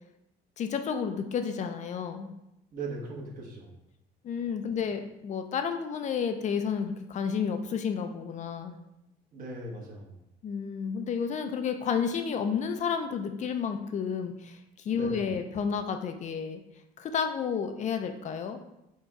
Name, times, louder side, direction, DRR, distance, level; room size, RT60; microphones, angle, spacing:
voice 1, 0.6-2.3 4.2-8.8 10.4-14.6 14.8-16.6 17.0-18.6, left 6 dB, 45° left, 7 dB, 0.4 m, -31 dB
voice 2, 2.7-3.7 9.3-10.2 14.9-15.2, right 2 dB, 55° right, 0 dB, 1.1 m, -39 dB
4.5 x 2.3 x 4.1 m, 0.87 s
cardioid pair, 110°, 17 cm